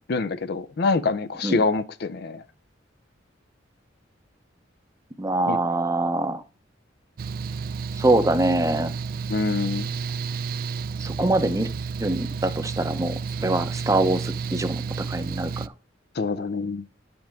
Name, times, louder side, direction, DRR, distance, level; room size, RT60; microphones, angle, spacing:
voice 1, 0.1-2.4 5.5-5.6 9.3-9.9 16.2-16.8, left 3 dB, 55° left, 0.5 m, -25 dB
voice 2, 5.2-6.4 8.0-8.9 11.0-11.7 12.0-15.7, right 2 dB, 15° right, 0.7 m, -24 dB
Mechanical fan, 7.2-15.7, right 5 dB, 50° right, 0.3 m, -31 dB
10.0 x 5.2 x 3.5 m
head